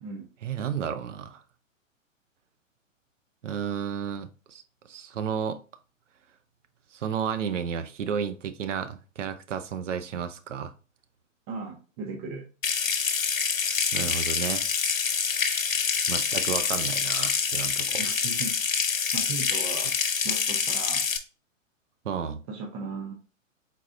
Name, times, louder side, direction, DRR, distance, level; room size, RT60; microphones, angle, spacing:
voice 1, 0.4-1.4 3.4-4.6 4.9-5.6 6.9-10.7 13.9-14.6 16.1-18.0 22.0-22.4, right 7 dB, 65° right, 0.7 m, -32 dB
voice 2, 11.5-12.5 18.0-18.6 19.1-19.9 20.2-21.0 22.5-23.1, right 4 dB, 25° right, 0.6 m, -36 dB
Water tap faucet / Sink (filling or washing) / Trickle dribble, 12.6-21.2, left 6 dB, 85° left, 0.8 m, -26 dB
4.2 x 3.9 x 2.5 m
figure-of-eight pair, 120°, 39 cm